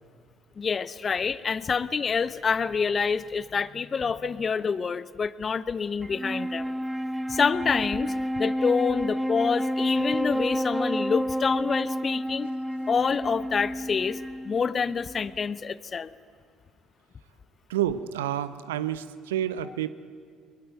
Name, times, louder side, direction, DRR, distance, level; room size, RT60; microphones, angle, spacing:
voice 1, 0.6-6.7 7.3-12.5 12.9-14.2 14.4-16.1, left 5 dB, 35° left, 17 dB, 1.0 m, -27 dB
Wind instrument woodwind instrument, 6.0-15.5, equal, 5° right, 0.8 m, -30 dB
voice 2, 17.7-19.9, right 11 dB, 80° right, 15 dB, 0.9 m, -29 dB
23.0 x 21.5 x 9.3 m, 2.2 s
hypercardioid pair, 55°, 0 cm